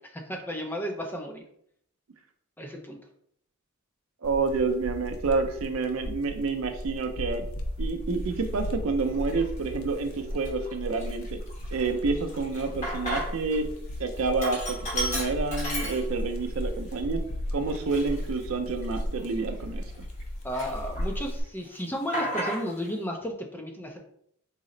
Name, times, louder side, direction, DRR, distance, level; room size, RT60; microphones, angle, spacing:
voice 1, 0.0-1.4 2.6-3.0 20.4-24.0, equal, 10° left, 2 dB, 0.4 m, -33 dB
sound 1, 4.2-21.4, equal, 80° left, 0.6 m, -35 dB
voice 2, 4.2-7.4 7.8-11.4 11.7-13.6 14.0-17.2 17.5-19.8, right 4 dB, 75° right, 6 dB, 0.5 m, -29 dB
Sink (filling or washing), 8.3-8.5 9.1-9.7 10.1-10.2 10.4-13.6 13.9-16.5 16.9-17.0 17.7-20.2 20.5-21.3 21.6-22.9, equal, 35° left, 1.0 m, -35 dB
4.1 x 2.0 x 3.7 m, 0.69 s
head